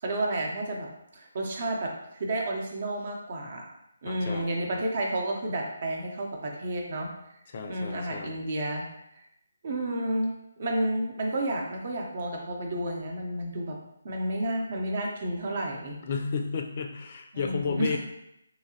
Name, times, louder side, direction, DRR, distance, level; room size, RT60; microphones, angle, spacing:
voice 1, 0.0-0.9 1.1-3.7 4.0-7.1 7.7-8.9 9.1-9.2 9.6-10.3 10.6-13.8 14.0-16.0 17.3-18.0, right 1 dB, 50° right, 0 dB, 0.7 m, -31 dB
voice 2, 4.1-4.8 7.5-8.3 16.0-18.0, left 5 dB, 40° left, 4 dB, 0.4 m, -32 dB
3.2 x 2.9 x 2.8 m, 0.82 s
hypercardioid pair, 160°, 0 cm